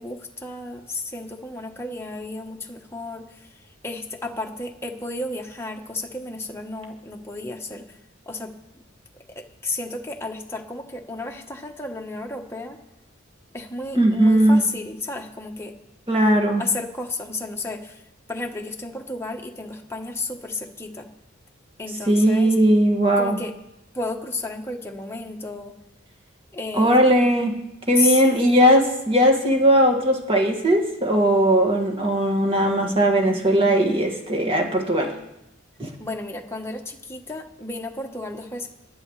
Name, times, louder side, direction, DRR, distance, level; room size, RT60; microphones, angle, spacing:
voice 1, 0.0-3.6 3.8-7.9 8.3-8.5 9.3-12.8 13.5-15.7 16.6-18.0 18.3-21.1 21.8-22.5 23.2-23.6 23.9-25.7 26.5-27.0 28.0-28.4 36.0-38.7, left 3 dB, 10° left, 2 dB, 1.1 m, -32 dB
voice 2, 14.0-14.6 16.1-16.6 22.1-23.4 26.7-27.5 27.9-35.1 35.8-35.9, right 1 dB, 25° right, 2 dB, 1.9 m, -18 dB
20.5 x 11.0 x 3.2 m, 0.87 s
head